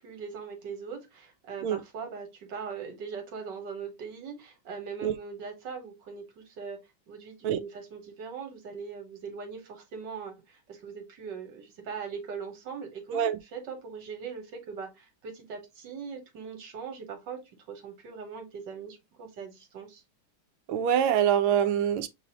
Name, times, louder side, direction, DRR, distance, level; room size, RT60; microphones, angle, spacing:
voice 1, 0.0-6.8 7.1-13.3 13.5-17.4 17.7-20.0, right 6 dB, 60° right, 1.9 m, -40 dB
voice 2, 20.7-22.1, right 9 dB, 85° right, 1.4 m, -25 dB
6.7 x 2.8 x 2.9 m
omnidirectional pair, 2.2 m